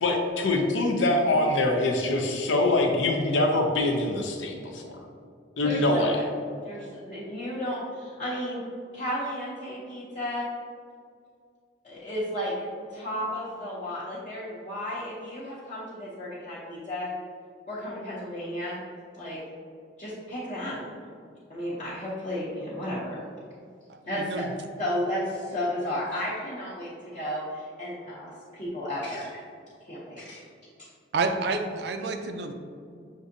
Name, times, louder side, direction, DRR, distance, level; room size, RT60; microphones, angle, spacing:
voice 1, 0.0-5.0 5.6-6.2, left 2 dB, 80° left, 2 dB, 0.6 m, -24 dB
voice 2, 5.6-6.2 6.6-8.6 8.9-10.5 11.8-17.1 17.7-18.8 19.2-19.4 20.0-20.9 21.5-23.2 24.1-24.3 24.8-29.4 29.9-30.4, equal, 35° left, -10 dB, 0.7 m, -33 dB
voice 3, 24.1-24.5 31.1-32.5, right 3 dB, 60° right, 6 dB, 0.3 m, -29 dB
6.1 x 2.6 x 2.6 m, 2.2 s
head